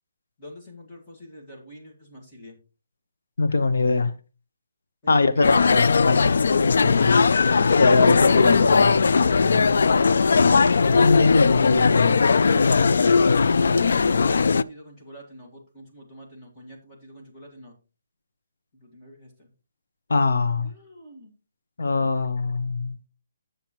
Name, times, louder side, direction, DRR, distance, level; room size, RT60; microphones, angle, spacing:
voice 1, 0.4-2.6 5.0-5.5 14.2-17.7 18.7-19.5 20.6-21.3, equal, 15° left, 1.8 m, -45 dB
voice 2, 3.4-4.1 5.1-6.3 6.6-7.2 7.7-9.8 10.8-12.2 20.1-20.7 21.8-22.9, left 3 dB, 80° left, 1.0 m, -22 dB
sound 1, 5.4-14.6, left 5 dB, 65° left, 0.3 m, -19 dB
9.0 x 6.9 x 3.0 m
hypercardioid pair, 175°, 0 cm